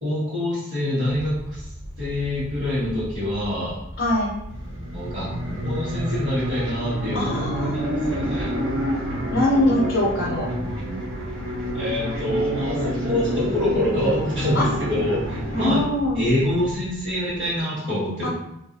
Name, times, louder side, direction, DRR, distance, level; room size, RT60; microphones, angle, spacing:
voice 1, 0.0-1.7 2.0-3.8 4.9-5.3 5.6-8.5 11.7-15.8 16.1-18.3, left 1 dB, 55° right, -13 dB, 1.3 m, -26 dB
sound 1, 1.1-17.6, equal, 30° right, 0.6 m, -38 dB
voice 2, 4.0-4.3 7.1-7.8 9.3-10.5 14.5-14.7 15.5-16.3 18.2-18.3, left 1 dB, 60° left, -3 dB, 0.5 m, -22 dB
sound 2, 4.5-15.8, equal, 85° right, 0.9 m, -28 dB
2.6 x 2.6 x 2.6 m, 0.79 s
head